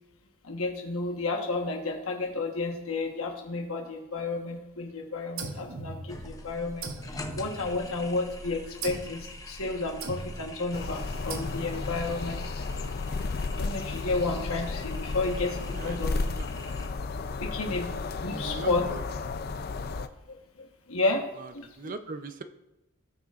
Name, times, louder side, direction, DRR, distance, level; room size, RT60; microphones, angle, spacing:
voice 1, 0.4-12.5 13.5-16.1 17.4-17.9 18.2-18.9 20.0-21.9, left 3 dB, 75° left, 2 dB, 1.2 m, -32 dB
sound 1, 5.4-6.4 6.8-8.1 8.8-9.2 10.0-10.6 11.3-11.9, right 3 dB, 60° right, 0.9 m, -39 dB
sound 2, 6.1-16.9, left 1 dB, 15° left, 0.8 m, -44 dB
sound 3, 10.7-20.1, left 3 dB, 45° left, 0.4 m, -33 dB
voice 2, 15.7-16.5 18.3-19.0 21.4-22.4, right 3 dB, 40° right, 9 dB, 0.6 m, -40 dB
17.0 x 6.7 x 2.5 m, 0.98 s
head